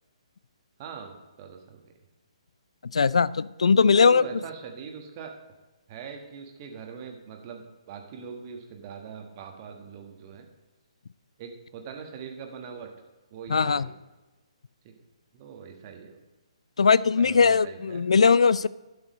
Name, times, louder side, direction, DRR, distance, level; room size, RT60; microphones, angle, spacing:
voice 1, 0.8-1.8 3.9-5.3 5.9-10.5 11.4-12.9 13.3-13.9 14.8-14.9 15.3-16.2 17.2-18.0, right 6 dB, 30° right, 3 dB, 1.3 m, -42 dB
voice 2, 2.9-4.2 13.5-13.9 16.8-18.7, left 5 dB, 65° left, 19 dB, 0.3 m, -20 dB
11.5 x 5.5 x 5.1 m, 1.2 s
figure-of-eight pair, 135°, 3 cm